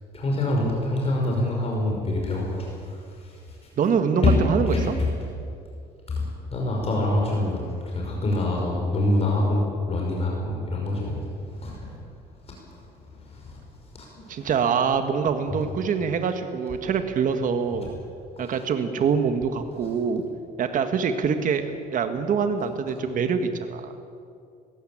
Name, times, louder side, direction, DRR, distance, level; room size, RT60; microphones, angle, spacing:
voice 1, 0.1-2.7 3.2-3.3 4.2-4.4 4.7-5.1 6.1-11.2 11.6-11.9 13.3-13.6 13.9-14.3 15.5-15.6, left 2 dB, 35° left, -1 dB, 5.5 m, -25 dB
voice 2, 3.8-4.9 14.3-17.9 18.4-20.2 20.6-23.9, right 6 dB, 50° right, 8 dB, 1.7 m, -25 dB
20.5 x 17.0 x 8.8 m, 2.4 s
cardioid pair, 110°, 17 cm